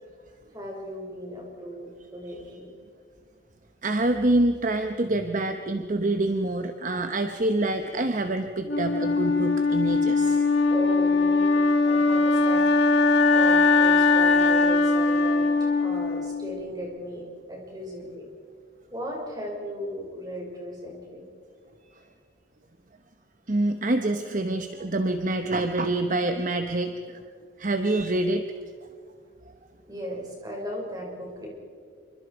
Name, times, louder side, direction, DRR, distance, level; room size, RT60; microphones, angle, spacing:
voice 1, 0.5-2.7 10.7-15.5 15.8-18.3 18.9-21.3 29.9-31.5, equal, 20° right, -1 dB, 5.6 m, -36 dB
voice 2, 3.8-10.5 21.8-22.1 23.5-27.2 27.6-28.5, right 2 dB, 40° right, 7 dB, 1.0 m, -26 dB
Wind instrument woodwind instrument, 8.7-16.7, left 3 dB, 55° left, 2.5 m, -21 dB
26.5 x 24.5 x 4.8 m, 2.1 s
head